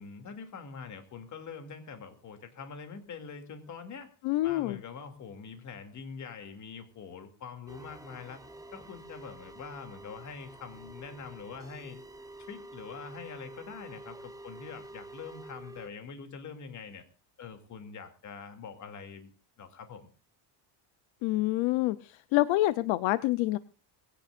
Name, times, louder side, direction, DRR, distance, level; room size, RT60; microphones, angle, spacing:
voice 1, 0.0-4.1 4.4-8.4 8.7-12.0 12.5-17.1 17.4-19.3 19.6-20.1, left 5 dB, 35° left, 7 dB, 2.7 m, -44 dB
voice 2, 4.2-4.8 21.2-23.6, left 17 dB, 70° left, 14 dB, 0.8 m, -27 dB
sound 1, 7.7-15.9, right 2 dB, 5° right, 1.1 m, -48 dB
22.0 x 17.0 x 2.5 m, 0.33 s
cardioid pair, 160°, 48 cm